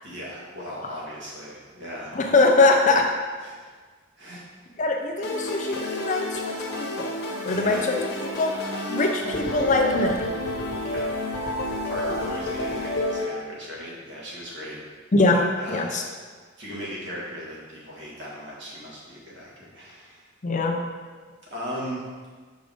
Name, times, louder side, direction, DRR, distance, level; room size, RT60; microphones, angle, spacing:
voice 1, 0.0-2.1 3.4-3.7 4.2-4.4 7.5-7.9 10.7-11.1 11.8-14.8 15.6-16.0 16.6-20.2 21.5-22.1, equal, 60° right, -5 dB, 1.8 m, -37 dB
voice 2, 2.1-3.1 4.8-7.1 7.4-10.3 15.1-16.0 20.4-20.8, left 3 dB, 35° left, 3 dB, 0.5 m, -22 dB
sound 1, 5.2-13.2, left 1 dB, 55° left, 1.2 m, -30 dB
6.4 x 5.1 x 3.5 m, 1.5 s
head